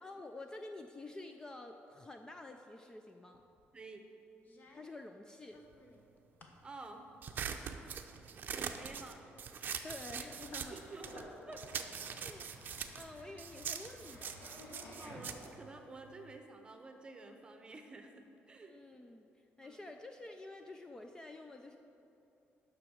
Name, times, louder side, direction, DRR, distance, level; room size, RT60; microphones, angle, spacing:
voice 1, 0.0-3.4 4.7-5.6 9.8-10.8 12.2-12.5 12.9-14.5 18.6-19.3 19.6-21.8, left 2 dB, 15° left, 5 dB, 0.4 m, -49 dB
sound 1, 3.3-3.8 4.4-6.7 7.1-7.7 8.0-9.1 9.6-9.7 10.5-11.7 12.0-12.7, left 2 dB, 40° left, 1.1 m, -63 dB
voice 2, 6.6-7.1 8.4-9.2 10.7-11.9 15.0-18.8 19.6-19.8, right 3 dB, 20° right, 5 dB, 0.9 m, -50 dB
sound 2, 7.2-11.3 11.6-16.4, right 7 dB, 45° right, 0.6 m, -43 dB
Sink (filling or washing), 10.2-15.8, left 1 dB, 80° left, 2.5 m, -54 dB
10.5 x 6.2 x 6.4 m, 2.9 s
cardioid pair, 150°, 4 cm